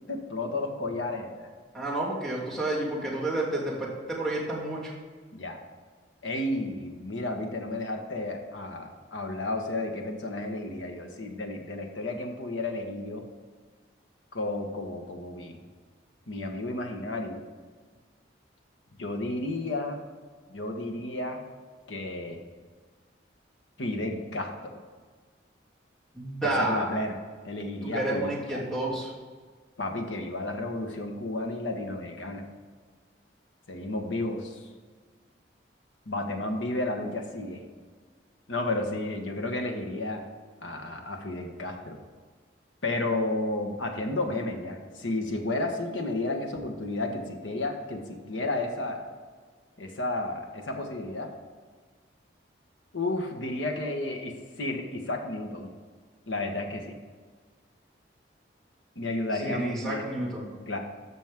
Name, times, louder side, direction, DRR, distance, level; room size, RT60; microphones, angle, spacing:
voice 1, 0.1-1.5 5.3-5.6 6.2-13.2 14.3-15.6 16.3-17.4 19.0-20.0 20.5-21.4 21.9-22.4 23.8-24.8 26.4-27.2 27.4-28.6 29.8-32.4 33.7-34.6 36.1-37.6 38.5-40.2 40.6-42.0 42.8-49.0 49.8-51.3 52.9-55.7 56.3-57.0 58.9-60.0 60.7-60.8, left 2 dB, 80° left, 3 dB, 1.4 m, -32 dB
voice 2, 1.7-4.9 26.1-26.9 27.8-29.1 59.4-60.5, right 1 dB, 5° left, -6 dB, 2.7 m, -30 dB
13.5 x 6.2 x 3.7 m, 1.5 s
head